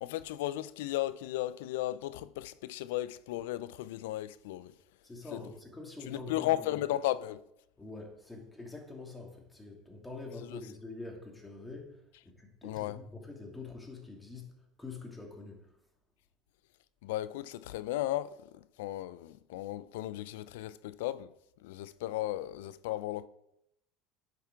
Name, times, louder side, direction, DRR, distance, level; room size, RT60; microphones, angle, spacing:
voice 1, 0.0-4.7 5.3-5.4 6.1-7.4 10.5-10.6 12.6-13.0 17.0-21.3 21.6-23.3, left 14 dB, 80° left, 0.4 m, -35 dB
voice 2, 5.0-6.8 7.8-15.8, left 3 dB, 10° left, 2.5 m, -46 dB
10.0 x 5.8 x 4.6 m
supercardioid pair, 95°, 0 cm